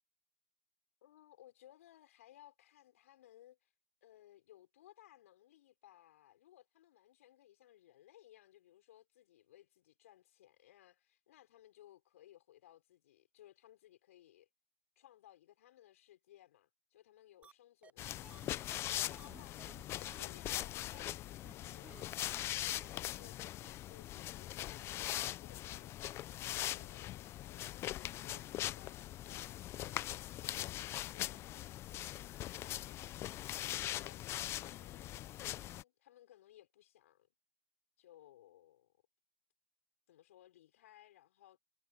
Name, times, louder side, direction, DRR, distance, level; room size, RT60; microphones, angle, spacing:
voice 1, 1.0-3.7 4.0-14.5 15.0-34.2 34.5-37.3 38.0-38.9 40.1-41.6, left 13 dB, 60° left, 6.4 m, -62 dB
sound 1, 17.4-17.5 17.8-17.9 18.2-20.3 20.5-20.6 20.9-21.1 21.5-21.6 21.8-22.0 22.3-22.4 22.7-22.9 23.2-23.3 23.6-23.7, right 6 dB, 15° right, 0.8 m, -58 dB
sound 2, 18.0-35.8, left 14 dB, 30° left, 1.0 m, -41 dB
figure-of-eight pair, 105°, 9 cm